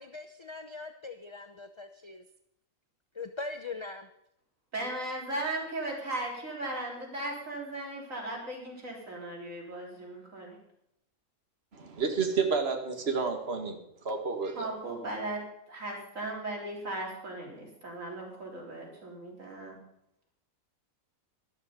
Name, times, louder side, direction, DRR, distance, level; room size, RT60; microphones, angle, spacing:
voice 1, 0.0-2.2 3.1-4.1, left 3 dB, 30° left, 8 dB, 0.6 m, -41 dB
voice 2, 4.7-10.6 14.6-15.4 15.7-19.8, right 2 dB, 65° right, -2 dB, 4.1 m, -37 dB
voice 3, 11.7-13.8 14.1-14.7, right 5 dB, 45° right, 3 dB, 2.1 m, -30 dB
13.0 x 12.5 x 5.2 m, 0.77 s
omnidirectional pair, 1.5 m